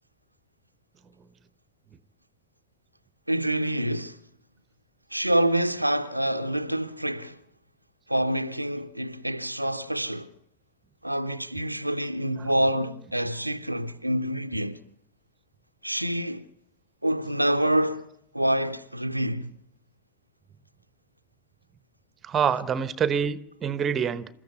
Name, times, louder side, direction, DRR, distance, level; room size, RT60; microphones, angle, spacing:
voice 1, 3.3-4.2 5.1-7.4 8.1-10.3 11.0-14.8 15.8-16.4 17.0-18.1 18.3-19.5, right 1 dB, 85° right, 0.8 m, -27 dB
voice 2, 22.2-24.3, right 7 dB, 25° right, 1.1 m, -26 dB
27.5 x 14.0 x 8.2 m
figure-of-eight pair, 90°, 0 cm